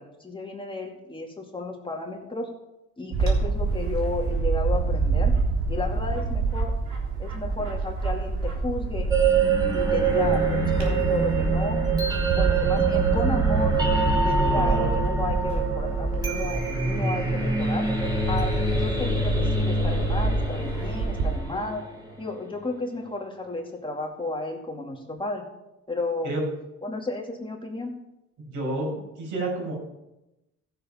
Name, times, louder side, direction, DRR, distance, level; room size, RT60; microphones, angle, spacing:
voice 1, 0.0-2.5 3.0-5.4 5.7-6.7 7.2-9.1 9.7-11.8 12.3-13.8 14.2-17.9 18.3-21.9 22.2-25.4 25.9-26.3 26.8-28.0, left 2 dB, 15° left, 0 dB, 2.3 m, -33 dB
Bird / Wind, 3.1-21.4, right 4 dB, 70° right, 3.6 m, -27 dB
sound 1, 9.1-22.1, right 3 dB, 15° right, 3.8 m, -25 dB
voice 2, 14.4-14.9 26.2-26.4 28.4-29.7, right 2 dB, 90° right, -1 dB, 5.7 m, -30 dB
15.0 x 7.0 x 5.7 m, 0.94 s
cardioid pair, 90°, 30 cm